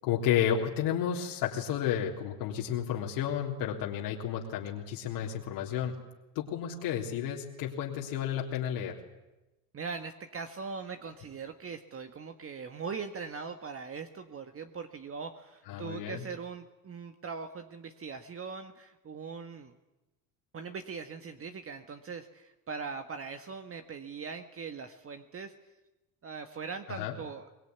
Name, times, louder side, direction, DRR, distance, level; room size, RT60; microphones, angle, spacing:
voice 1, 0.0-6.0 6.4-9.0 15.7-16.2 26.9-27.2, left 9 dB, 70° left, -2 dB, 3.6 m, -32 dB
voice 2, 9.7-19.7 20.5-25.5 26.2-27.5, right 5 dB, 30° right, 7 dB, 1.7 m, -41 dB
23.5 x 20.5 x 9.6 m, 1.0 s
supercardioid pair, 85°, 42 cm